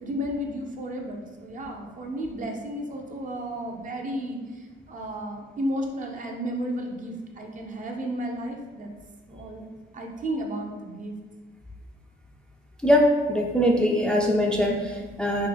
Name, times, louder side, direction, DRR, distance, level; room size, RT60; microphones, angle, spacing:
voice 1, 0.0-8.9 9.3-9.7 9.9-11.2, equal, 40° right, 1 dB, 0.6 m, -33 dB
voice 2, 12.8-15.5, equal, 5° left, -1 dB, 0.4 m, -22 dB
3.6 x 2.8 x 3.4 m, 1.3 s
cardioid pair, 90°, 20 cm